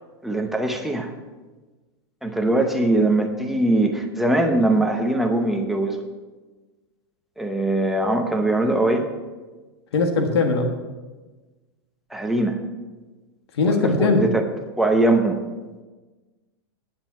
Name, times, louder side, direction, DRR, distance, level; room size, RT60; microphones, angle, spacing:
voice 1, 0.2-1.1 2.2-6.0 7.4-9.1 12.1-12.6 13.6-14.4 14.8-15.4, right 2 dB, ahead, 3 dB, 0.7 m, -21 dB
voice 2, 9.9-10.7 13.5-14.2, left 3 dB, 80° left, 4 dB, 1.5 m, -20 dB
10.0 x 7.4 x 7.2 m, 1.3 s
supercardioid pair, 170°, 13 cm